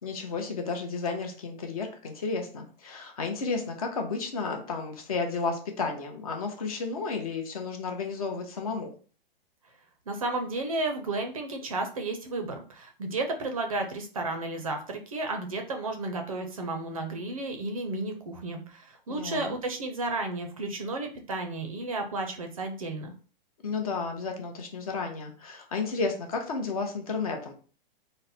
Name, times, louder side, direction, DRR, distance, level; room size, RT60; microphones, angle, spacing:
voice 1, 0.0-8.9 19.1-19.5 23.6-27.5, left 4 dB, 40° left, 3 dB, 0.7 m, -32 dB
voice 2, 10.1-23.1, right 2 dB, 35° right, 5 dB, 0.5 m, -33 dB
4.0 x 2.1 x 4.0 m, 0.38 s
hypercardioid pair, 180°, 29 cm